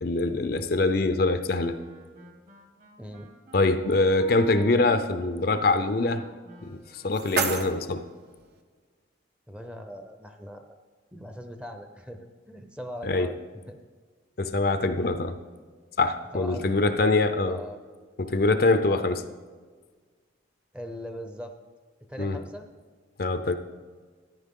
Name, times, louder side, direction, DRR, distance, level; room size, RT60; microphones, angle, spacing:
voice 1, 0.0-1.8 3.5-6.2 6.6-8.1 13.0-13.3 14.4-15.4 16.0-17.6 18.2-19.2 22.2-22.4 23.2-23.5, left 2 dB, 50° left, 10 dB, 0.6 m, -24 dB
Wind instrument woodwind instrument, 1.5-7.9, left 1 dB, 40° right, 1.6 m, -49 dB
voice 2, 3.0-3.3 9.5-10.8 11.1-13.8 16.3-17.8 18.9-19.2 20.7-21.5 22.1-22.7, equal, 5° right, 5 dB, 0.7 m, -40 dB
sound 1, 6.6-8.6, right 5 dB, 60° right, 1.0 m, -32 dB
13.5 x 10.5 x 3.7 m, 1.5 s
head